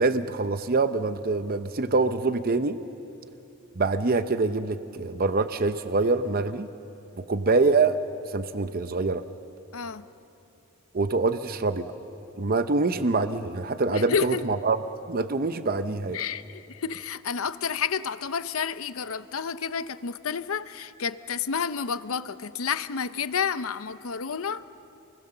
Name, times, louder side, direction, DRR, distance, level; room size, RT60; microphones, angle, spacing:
voice 1, 0.0-2.8 3.8-6.7 7.2-8.0 8.3-9.2 10.9-11.9 12.4-14.8 15.1-16.2, right 3 dB, 40° right, 10 dB, 0.7 m, -25 dB
voice 2, 9.7-10.0 13.9-14.4 16.1-24.6, left 6 dB, 65° left, 13 dB, 0.7 m, -30 dB
29.0 x 22.0 x 6.7 m, 2.8 s
head